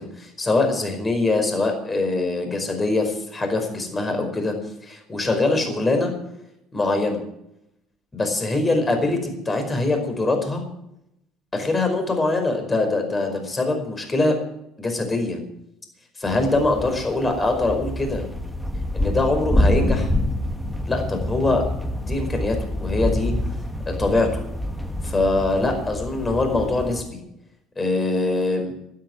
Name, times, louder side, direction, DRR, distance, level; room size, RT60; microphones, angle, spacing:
voice 1, 0.0-4.5 4.8-6.1 6.7-7.2 8.1-10.6 11.5-14.4 14.8-15.4 16.2-18.3 18.9-20.1 20.9-21.7 22.0-23.3 24.0-24.3 25.0-27.0 27.8-28.7, left 2 dB, 20° left, 5 dB, 5.0 m, -23 dB
sound 1, 16.3-27.0, left 1 dB, 5° left, 1.7 m, -26 dB
12.0 x 11.0 x 9.5 m, 0.81 s
supercardioid pair, 95°, 0 cm